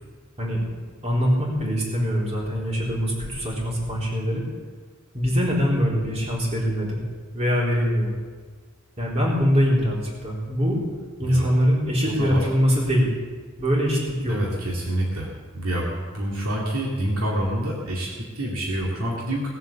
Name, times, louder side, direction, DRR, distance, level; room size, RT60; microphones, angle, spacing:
voice 1, 1.0-4.4 5.1-7.0 7.3-8.1 9.0-10.8 11.2-13.1 13.6-14.4, equal, 30° right, -4 dB, 3.8 m, -23 dB
voice 2, 11.2-11.6 12.0-12.5 14.3-15.3 15.5-19.5, right 1 dB, 80° right, -3 dB, 2.4 m, -27 dB
19.0 x 7.9 x 7.2 m, 1.5 s
head